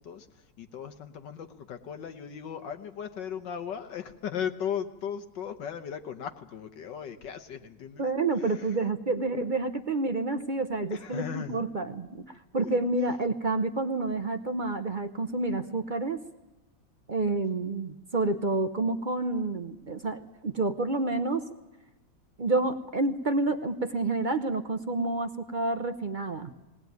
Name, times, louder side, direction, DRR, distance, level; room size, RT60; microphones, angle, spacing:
voice 1, 0.0-8.1 8.4-8.8 10.9-11.6 12.6-12.8, left 8 dB, 70° left, 8 dB, 1.6 m, -37 dB
voice 2, 8.0-12.2 12.5-16.2 17.1-21.4 22.4-26.5, right 2 dB, 45° right, 9 dB, 0.6 m, -29 dB
19.5 x 19.0 x 9.3 m, 1.0 s
omnidirectional pair, 2.0 m